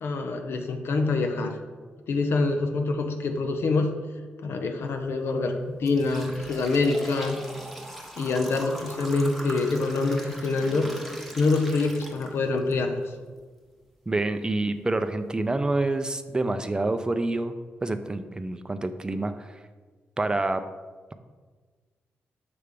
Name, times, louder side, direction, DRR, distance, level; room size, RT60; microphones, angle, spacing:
voice 1, 0.0-1.6 2.1-3.9 4.4-7.4 8.2-10.9 11.4-13.0, left 3 dB, 70° left, 5 dB, 0.6 m, -25 dB
sound 1, 4.9-5.1 5.6-12.7 13.2-13.3 14.1-14.2 14.7-14.8 15.3-15.5, equal, ahead, 1.0 m, -40 dB
voice 2, 14.1-17.5 17.8-19.6 20.2-20.6, right 2 dB, 20° right, 9 dB, 0.4 m, -27 dB
6.7 x 3.3 x 5.1 m, 1.4 s
cardioid pair, 90°, 4 cm